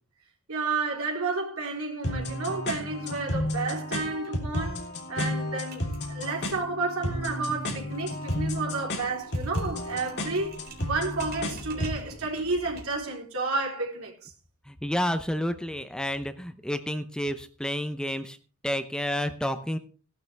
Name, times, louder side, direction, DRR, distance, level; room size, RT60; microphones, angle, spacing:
voice 1, 0.5-4.8 5.1-14.3, right 3 dB, 70° right, 3.9 m, -31 dB
sound 1, 2.0-12.0, left 1 dB, 55° left, 3.6 m, -32 dB
sound 2, 4.2-4.3 4.6-4.7 4.9-13.1, right 2 dB, 45° right, 3.9 m, -47 dB
voice 2, 14.7-18.4 18.6-19.8, equal, 5° left, 0.7 m, -30 dB
17.0 x 12.0 x 3.4 m
head